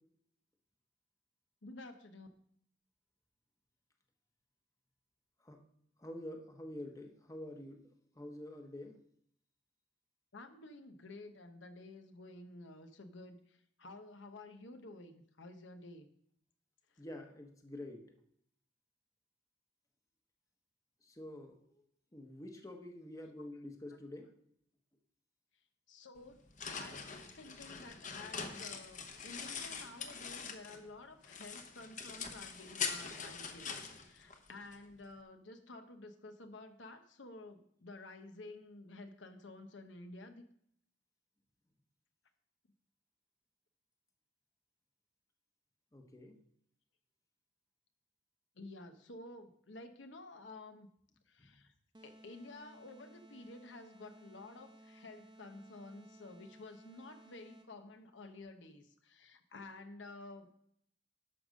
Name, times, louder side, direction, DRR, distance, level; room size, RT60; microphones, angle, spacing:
voice 1, 1.6-2.3 10.3-13.4 13.8-16.1 25.9-26.4 26.7-40.5 48.6-50.9 51.3-51.7 52.0-60.6, left 2 dB, 75° left, 7 dB, 0.9 m, -52 dB
voice 2, 6.0-7.8 8.2-9.0 17.0-18.1 21.0-21.8 22.1-24.3 45.9-46.4 51.4-51.5, left 1 dB, 20° left, 4 dB, 1.0 m, -47 dB
sound 1, 26.2-30.9 31.2-34.8, left 6 dB, 40° left, 1.0 m, -43 dB
sound 2, 51.9-57.9, right 1 dB, 25° right, 0.9 m, -59 dB
11.5 x 5.3 x 6.3 m, 0.69 s
head